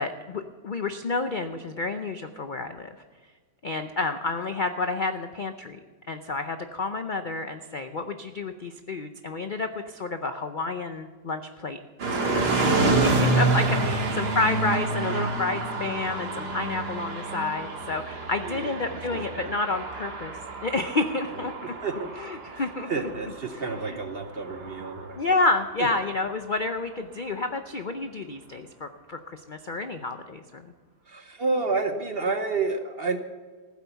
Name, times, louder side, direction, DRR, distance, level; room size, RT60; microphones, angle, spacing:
voice 1, 0.0-2.9 3.6-5.8 6.1-11.8 12.1-20.3 20.6-21.7 22.2-22.9 23.7-24.0 25.2-30.7, left 3 dB, 60° left, 8 dB, 0.5 m, -30 dB
sound 1, 12.0-26.0, right 3 dB, 75° right, 2.5 m, -28 dB
voice 2, 18.4-18.8 19.1-19.5 21.6-22.1 22.5-25.2 31.1-33.2, right 3 dB, 45° right, 7 dB, 0.8 m, -30 dB
15.0 x 8.5 x 6.9 m, 1.5 s
omnidirectional pair, 1.8 m